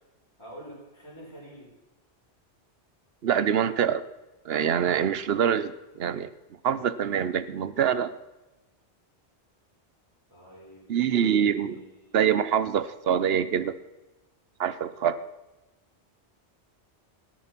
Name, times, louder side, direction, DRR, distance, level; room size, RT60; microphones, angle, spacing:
voice 1, 0.4-1.8 10.3-12.2, right 1 dB, 25° left, -7 dB, 5.2 m, -47 dB
voice 2, 3.2-4.1 4.4-6.3 6.6-8.1 10.9-11.8 12.1-13.8 14.6-15.2, right 8 dB, 65° right, 15 dB, 0.9 m, -25 dB
17.5 x 8.9 x 6.0 m, 1.0 s
omnidirectional pair, 1.1 m